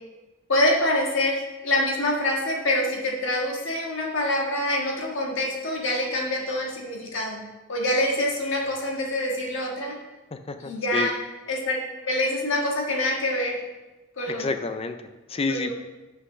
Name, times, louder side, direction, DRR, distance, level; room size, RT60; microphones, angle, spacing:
voice 1, 0.5-7.4 7.7-10.0 10.6-11.1 11.5-11.8 12.1-13.6 14.2-14.4 15.5-15.7, left 1 dB, 70° left, -1 dB, 1.6 m, -25 dB
voice 2, 10.3-11.1 14.3-15.7, left 3 dB, 30° left, 8 dB, 0.4 m, -29 dB
6.3 x 5.9 x 5.3 m, 1.1 s
head